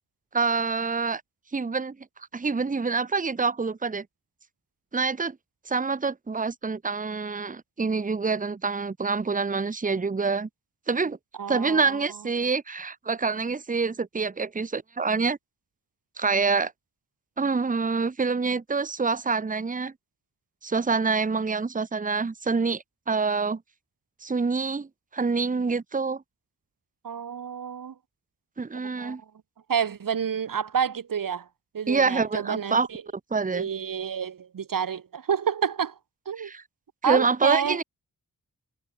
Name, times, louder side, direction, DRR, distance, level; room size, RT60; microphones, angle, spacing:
voice 1, 0.3-1.2 1.5-2.0 2.3-4.0 4.9-5.4 5.7-10.5 10.9-11.2 11.5-15.4 16.2-16.7 17.4-19.9 20.6-23.6 24.2-24.9 25.1-26.2 28.6-29.2 31.9-32.9 33.3-33.7 36.4-36.6 37.1-37.8, right 4 dB, 25° right, 1.0 m, -26 dB
voice 2, 11.4-12.0 27.0-27.9 28.8-29.2 29.7-31.5 31.7-33.0 33.5-36.0 36.3-36.5 37.0-37.8, right 7 dB, 65° right, 1.7 m, -29 dB
wide cardioid pair, 135°, 35 cm